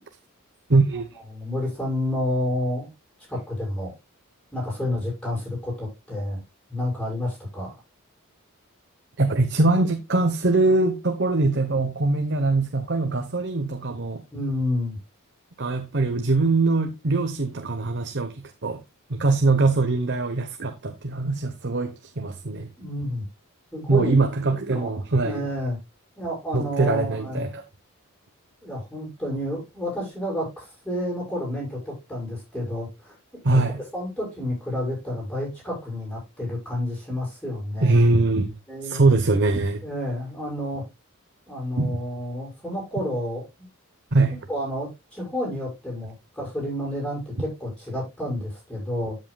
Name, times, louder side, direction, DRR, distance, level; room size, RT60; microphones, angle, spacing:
voice 1, 0.7-1.1 9.2-14.2 15.6-18.8 19.1-22.7 23.9-25.5 26.5-27.6 33.4-33.8 37.8-38.5 38.8-39.8 41.8-41.9 44.1-44.4, right 3 dB, 55° right, 1.0 m, -22 dB
voice 2, 1.3-2.9 3.3-3.9 4.5-6.4 6.7-7.8 14.3-15.0 22.8-23.3 23.7-24.2 24.7-24.9 25.2-25.8 26.2-27.5 28.6-33.2 33.7-38.0 38.7-39.2 39.8-40.9 41.5-43.5 44.5-49.2, left 1 dB, 5° left, 7.0 m, -30 dB
13.5 x 7.6 x 2.3 m
head